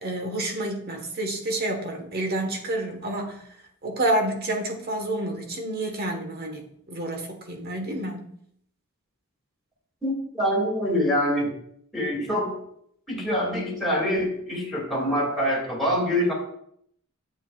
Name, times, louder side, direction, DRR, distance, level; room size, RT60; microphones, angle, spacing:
voice 1, 0.0-3.4 3.8-8.3, right 1 dB, 45° right, 1.4 m, -29 dB
voice 2, 10.0-11.5 11.9-12.6 13.1-16.3, equal, ahead, 2.4 m, -25 dB
8.9 x 8.0 x 2.4 m
head